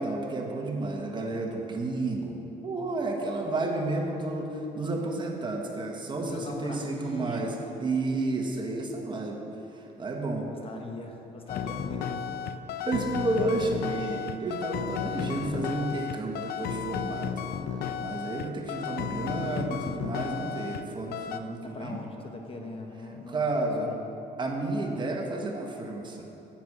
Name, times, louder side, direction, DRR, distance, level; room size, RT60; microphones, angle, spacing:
voice 1, 0.0-7.5 7.8-9.4 10.0-10.5 12.8-17.4 18.0-22.0 23.3-23.9 24.4-26.2, right 2 dB, 25° right, 1 dB, 1.5 m, -31 dB
voice 2, 6.2-7.6 10.4-12.6 21.6-24.1, left 2 dB, 35° left, 3 dB, 1.1 m, -41 dB
sound 1, 11.5-20.9 21.1-21.4, left 8 dB, 70° left, 0.6 m, -33 dB
10.0 x 8.1 x 6.2 m, 2.9 s
cardioid pair, 110°, 17 cm